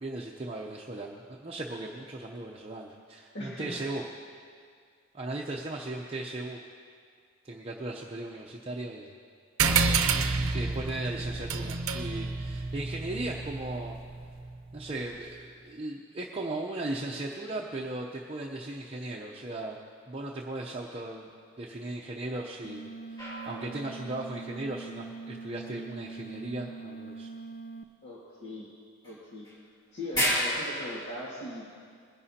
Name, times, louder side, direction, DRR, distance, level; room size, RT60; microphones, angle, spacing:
voice 1, 0.0-4.0 5.1-6.6 7.4-9.1 10.5-14.0 14.7-19.8 20.1-21.3 21.6-27.3, right 2 dB, 30° right, -2 dB, 0.7 m, -37 dB
voice 2, 3.3-3.8 28.0-28.7 29.0-29.5 29.9-31.6, left 1 dB, 55° left, -6 dB, 1.9 m, -40 dB
sound 1, 9.6-14.5, right 4 dB, 90° right, 0.7 m, -29 dB
sound 2, 22.6-27.8, right 3 dB, 40° left, 0.5 m, -43 dB
sound 3, 23.2-24.5 29.0-29.1 29.4-29.5 30.1-31.1, equal, 20° left, 3.4 m, -31 dB
21.0 x 11.0 x 2.8 m, 2.1 s
head